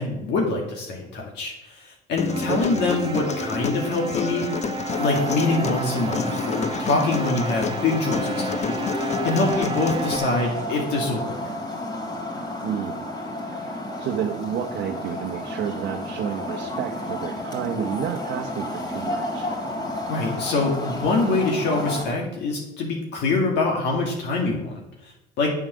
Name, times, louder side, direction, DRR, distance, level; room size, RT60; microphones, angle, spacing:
voice 1, 0.0-4.5 5.0-11.4 20.1-25.5, left 3 dB, 70° left, -1 dB, 2.2 m, -25 dB
Human voice, 2.2-10.2, left 6 dB, 40° left, 0.7 m, -30 dB
sound 1, 2.3-10.8, right 6 dB, 25° right, 0.6 m, -33 dB
sound 2, 4.9-22.1, left 1 dB, 20° left, 3.0 m, -31 dB
voice 2, 12.6-13.1 13.4-19.5, right 9 dB, 65° right, 3 dB, 0.9 m, -30 dB
7.6 x 7.1 x 6.2 m, 0.88 s
supercardioid pair, 80°, 19 cm